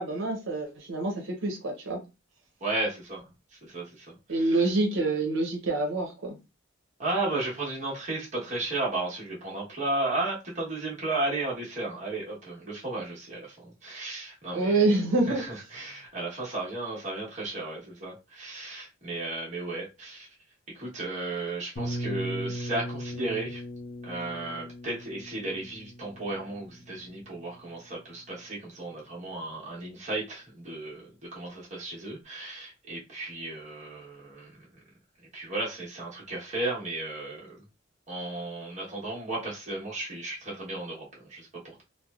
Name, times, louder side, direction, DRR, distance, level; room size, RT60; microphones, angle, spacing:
voice 1, 0.0-2.0 4.3-6.3 14.5-15.4, right 2 dB, 85° right, 0.7 m, -26 dB
voice 2, 2.6-4.7 7.0-15.0 15.2-20.3 20.7-23.6 24.0-34.7 35.3-37.6 38.1-41.8, right 2 dB, 40° right, 1.1 m, -34 dB
sound 1, 21.8-27.5, right 1 dB, 55° left, 0.6 m, -38 dB
3.3 x 2.1 x 2.3 m
head